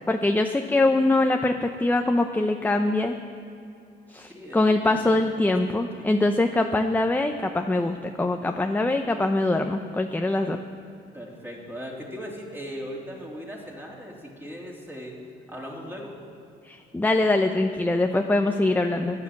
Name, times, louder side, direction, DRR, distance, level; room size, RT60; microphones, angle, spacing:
voice 1, 0.1-3.1 4.1-10.6 16.7-19.2, left 2 dB, 10° left, 5 dB, 0.7 m, -23 dB
voice 2, 4.3-5.1 5.5-6.1 11.1-15.1 15.5-16.2 19.1-19.2, equal, 10° right, -2 dB, 3.1 m, -38 dB
12.0 x 9.8 x 7.3 m, 2.7 s
cardioid pair, 90°, 20 cm